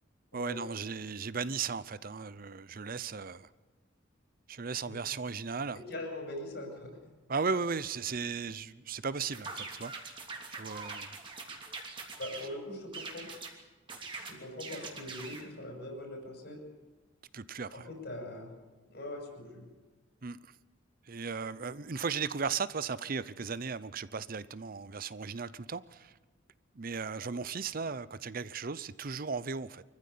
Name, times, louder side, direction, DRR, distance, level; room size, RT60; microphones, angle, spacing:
voice 1, 0.3-3.5 4.5-5.8 7.3-9.9 10.5-11.1 17.3-17.9 20.2-20.5 21.1-26.1 26.7-29.8, right 5 dB, 50° right, 0.7 m, -36 dB
voice 2, 5.7-6.9 12.2-13.3 14.2-16.6 17.7-18.5 18.9-19.6 27.1-27.3, left 1 dB, 60° left, 5.9 m, -42 dB
sound 1, 9.3-12.5 12.9-13.5 13.9-15.5, right 4 dB, 25° right, 3.1 m, -43 dB
25.0 x 15.0 x 8.5 m
head